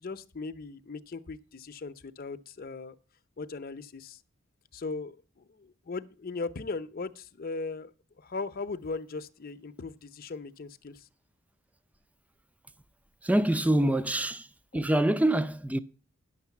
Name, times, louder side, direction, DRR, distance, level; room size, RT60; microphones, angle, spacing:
voice 1, 0.0-3.0 3.4-4.2 4.7-11.1 13.8-14.3 14.7-14.8, left 3 dB, 45° left, 0.7 m, -38 dB
voice 2, 13.2-14.5 14.7-15.8, right 1 dB, 5° right, 0.4 m, -25 dB
10.0 x 6.6 x 7.1 m
head